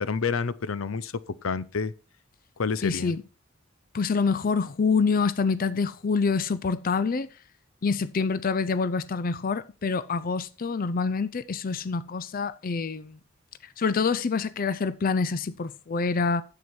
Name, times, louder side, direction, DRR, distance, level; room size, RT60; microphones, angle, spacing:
voice 1, 0.0-1.9 2.6-3.2, left 5 dB, 85° left, 0.6 m, -29 dB
voice 2, 2.8-3.2 3.9-7.3 7.8-13.2 13.8-16.4, left 4 dB, 45° left, 0.5 m, -26 dB
9.4 x 7.8 x 4.3 m
head